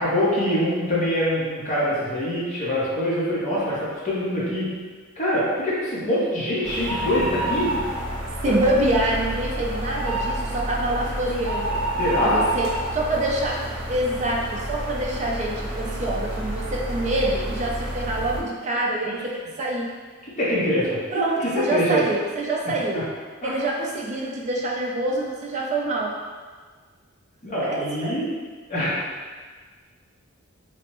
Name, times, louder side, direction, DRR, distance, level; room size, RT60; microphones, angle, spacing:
voice 1, 0.0-4.7 5.2-7.7 8.4-8.5 12.0-12.4 19.0-19.1 20.2-22.0 22.9-23.0 23.4-23.5 27.4-28.3 28.7-29.0, equal, 35° left, -8 dB, 0.9 m, -24 dB
sound 1, 6.6-18.4, right 1 dB, 85° right, 0.6 m, -29 dB
voice 2, 8.4-11.9 12.2-12.7 12.9-13.6 13.9-19.9 21.1-23.0 23.4-26.1 27.6-28.1, right 1 dB, 35° right, -2 dB, 0.4 m, -26 dB
3.3 x 2.1 x 2.9 m, 1.5 s
head